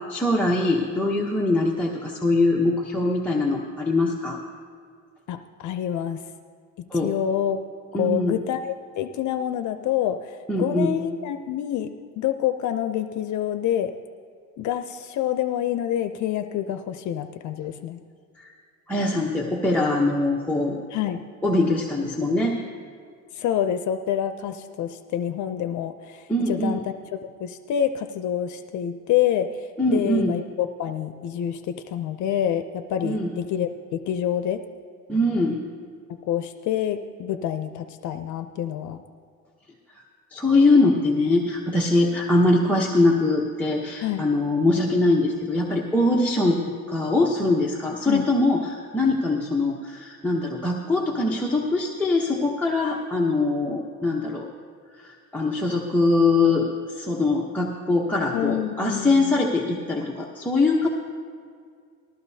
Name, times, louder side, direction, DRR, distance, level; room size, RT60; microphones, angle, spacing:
voice 1, 0.1-4.4 6.9-7.1 7.9-8.4 10.5-11.0 18.4-18.5 18.9-20.8 21.4-22.6 26.3-26.8 29.8-30.3 33.0-33.3 35.1-35.6 40.3-46.6 46.9-54.5 55.0-60.9, left 2 dB, 5° left, -2 dB, 0.8 m, -22 dB
voice 2, 5.3-6.2 6.8-7.6 7.9-13.9 14.6-18.0 20.9-21.2 23.3-34.6 36.3-39.0 44.0-44.3 48.1-48.3 58.3-59.4, left 10 dB, 70° left, 8 dB, 0.6 m, -27 dB
19.5 x 14.0 x 2.7 m, 2.2 s
cardioid pair, 155°, 31 cm